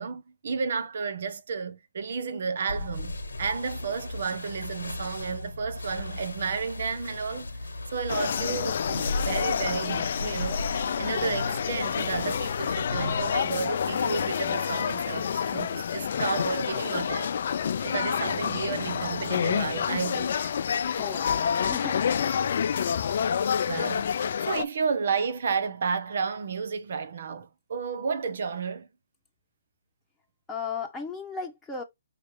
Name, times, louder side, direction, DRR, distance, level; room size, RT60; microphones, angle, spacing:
voice 1, 0.0-17.3 17.8-20.5 23.7-24.1 24.4-28.9, right 5 dB, 60° right, 1.0 m, -32 dB
sound 1, 2.7-13.4, left 2 dB, 80° left, 1.0 m, -36 dB
sound 2, 8.1-24.6, left 7 dB, 55° left, 0.3 m, -28 dB
voice 2, 20.8-22.4 30.5-31.8, left 5 dB, 10° left, 1.1 m, -37 dB
5.0 x 2.9 x 3.1 m
hypercardioid pair, 145°, 0 cm